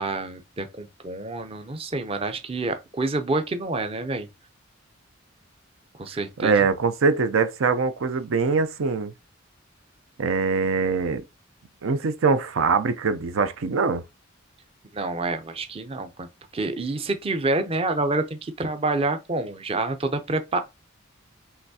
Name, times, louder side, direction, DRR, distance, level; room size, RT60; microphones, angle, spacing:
voice 1, 0.0-4.3 6.0-6.6 14.9-20.6, right 2 dB, 30° right, 0.5 m, -28 dB
voice 2, 6.4-9.1 10.2-11.2 11.8-14.0, right 4 dB, 80° right, 0.5 m, -23 dB
5.7 x 3.1 x 2.7 m
head